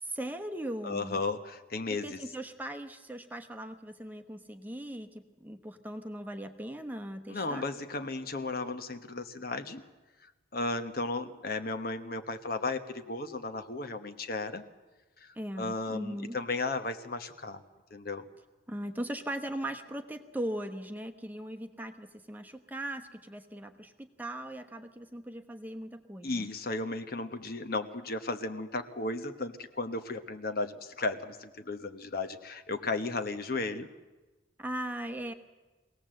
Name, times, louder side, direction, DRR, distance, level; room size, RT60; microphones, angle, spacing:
voice 1, 0.0-1.2 1.9-7.7 15.4-16.4 18.7-26.5 34.6-35.3, right 1 dB, 10° right, 5 dB, 1.0 m, -39 dB
voice 2, 0.8-2.2 7.3-9.8 10.5-14.6 15.2-15.3 15.6-17.6 17.9-18.2 26.2-33.9, left 3 dB, 50° left, 8 dB, 1.1 m, -34 dB
23.0 x 18.0 x 7.7 m, 1.2 s
head